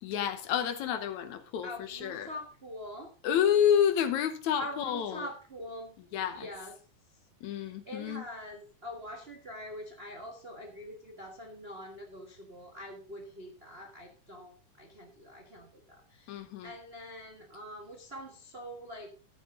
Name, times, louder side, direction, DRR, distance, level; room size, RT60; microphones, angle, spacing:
voice 1, 0.0-2.3 3.2-5.3 6.1-6.5 7.4-8.2 16.3-16.7, left 9 dB, 70° left, 2.2 m, -29 dB
voice 2, 1.6-3.1 4.6-6.7 7.4-19.1, equal, 65° right, 0.6 m, -44 dB
12.0 x 9.1 x 3.7 m
omnidirectional pair, 3.7 m